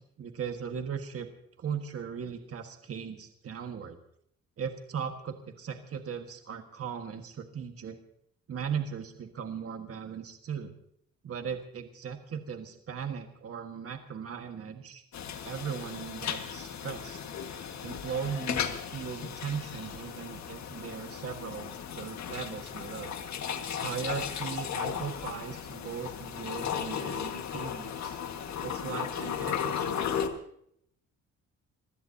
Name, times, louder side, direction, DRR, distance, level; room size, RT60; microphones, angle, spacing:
voice 1, 0.2-1.3 1.6-4.0 4.6-8.0 8.5-10.7 11.2-15.0 15.4-17.2 17.8-23.2 23.8-28.2 28.6-30.3, right 7 dB, 50° right, 5 dB, 1.6 m, -38 dB
sound 1, 15.1-30.3, left 8 dB, 65° left, 1.7 m, -36 dB
26.5 x 16.0 x 2.8 m, 0.69 s
cardioid pair, 90°, 30 cm